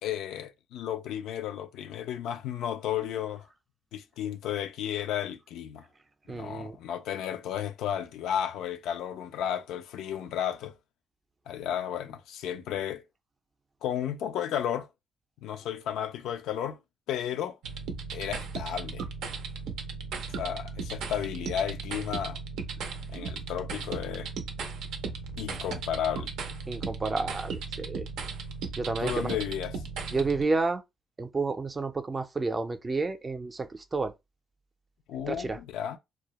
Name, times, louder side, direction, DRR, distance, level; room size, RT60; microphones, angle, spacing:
voice 1, 0.0-3.5 3.9-5.9 6.3-10.7 11.5-13.0 13.8-14.9 15.4-16.8 17.1-17.6 18.1-19.1 20.4-22.4 23.1-24.3 25.4-26.3 29.0-29.8 35.1-36.0, left 10 dB, 90° left, 0.3 m, -33 dB
voice 2, 6.3-6.8 26.7-28.1 28.8-29.4 30.1-30.8 31.2-34.1 35.3-35.6, right 3 dB, 30° right, 0.4 m, -30 dB
sound 1, 17.6-30.4, right 5 dB, 85° right, 0.5 m, -36 dB
2.2 x 2.0 x 2.8 m
cardioid pair, 90°, 0 cm